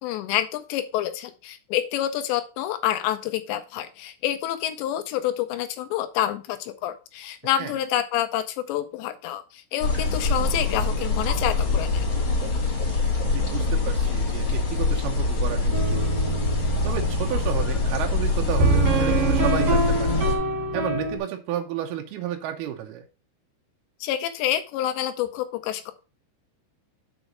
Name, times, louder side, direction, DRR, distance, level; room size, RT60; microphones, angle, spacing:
voice 1, 0.0-12.1 24.0-25.9, left 12 dB, 85° left, 9 dB, 2.5 m, -28 dB
sound 1, 9.8-20.3, left 3 dB, 40° left, 2.1 m, -24 dB
voice 2, 13.3-16.3 16.8-20.2 20.7-23.0, right 10 dB, 90° right, 4 dB, 2.2 m, -32 dB
sound 2, 15.7-21.2, right 2 dB, 45° right, 2.6 m, -25 dB
6.2 x 5.3 x 6.1 m, 0.33 s
omnidirectional pair, 5.7 m